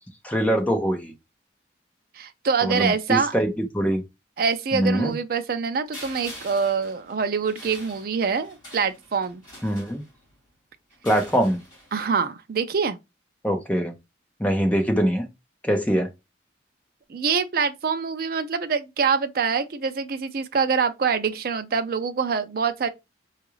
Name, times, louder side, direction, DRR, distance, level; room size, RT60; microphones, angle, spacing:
voice 1, 0.2-1.1 2.6-4.0 4.7-5.1 9.6-10.0 11.0-11.6 13.4-13.9 14.4-15.3 15.6-16.1, equal, 5° left, 0.6 m, -23 dB
voice 2, 2.1-3.3 4.4-9.4 11.9-13.0 17.1-22.9, right 5 dB, 50° right, 0.4 m, -25 dB
sound 1, 5.9-10.4 10.9-12.2, equal, 25° left, 2.4 m, -45 dB
3.9 x 2.4 x 3.0 m
head